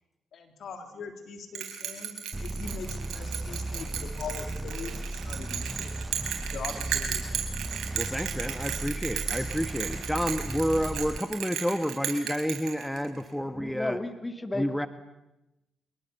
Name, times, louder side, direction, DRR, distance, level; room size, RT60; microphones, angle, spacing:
voice 1, 0.3-2.1 2.4-6.0 6.5-7.5, left 5 dB, 65° left, 6 dB, 3.4 m, -41 dB
Bell, 1.5-13.2, right 9 dB, 75° right, 4.5 m, -34 dB
sound 1, 2.3-11.2, right 2 dB, 20° right, 0.8 m, -36 dB
voice 2, 7.9-14.0 14.5-14.9, equal, 5° left, 10 dB, 1.3 m, -30 dB
voice 3, 13.7-14.9, left 2 dB, 20° left, 8 dB, 2.7 m, -33 dB
23.0 x 22.5 x 7.0 m, 0.96 s
supercardioid pair, 55°, 0 cm